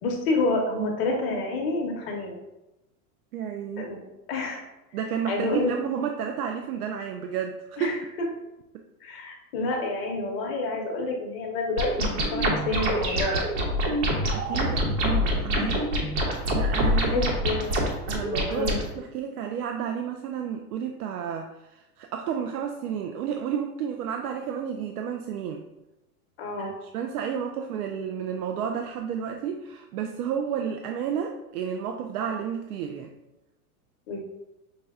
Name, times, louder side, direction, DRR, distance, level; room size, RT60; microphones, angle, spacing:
voice 1, 0.0-2.4 3.8-4.0 4.3-4.6 5.3-5.7 7.8-8.0 9.0-11.9 12.3-13.5 17.1-17.7 18.5-18.8 26.4-26.8 34.1-34.2, left 2 dB, 40° left, 1 dB, 0.8 m, -28 dB
voice 2, 3.3-3.9 4.9-8.0 8.7-8.8 14.3-15.9 16.5-17.3 18.1-25.7 26.6-33.1, right 8 dB, 75° right, 4 dB, 0.5 m, -31 dB
sound 1, 11.8-18.8, equal, 50° right, 1.0 m, -25 dB
5.5 x 2.2 x 3.5 m, 0.97 s
supercardioid pair, 165°, 45 cm